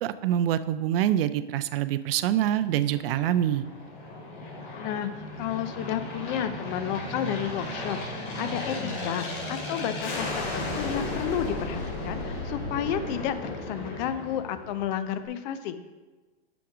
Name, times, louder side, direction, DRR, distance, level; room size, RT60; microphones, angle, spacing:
voice 1, 0.0-3.6, right 11 dB, 60° right, 13 dB, 0.5 m, -25 dB
Aircraft, 2.2-15.0, left 2 dB, 65° left, 2.4 m, -35 dB
voice 2, 4.7-15.8, left 10 dB, 45° left, 11 dB, 0.6 m, -32 dB
6.2 x 5.8 x 4.9 m, 1.2 s
hypercardioid pair, 120°, 32 cm